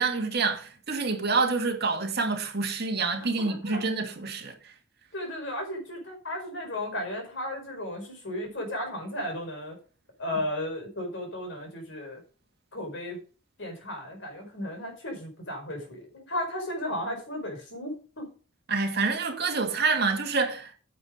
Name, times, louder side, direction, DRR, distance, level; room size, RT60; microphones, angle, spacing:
voice 1, 0.0-4.7 18.7-20.7, right 4 dB, 50° right, 2.4 m, -27 dB
voice 2, 3.4-3.8 5.1-9.8 10.2-12.2 12.7-13.2 13.6-18.3, left 1 dB, 60° left, 5.0 m, -35 dB
9.4 x 8.2 x 5.2 m
head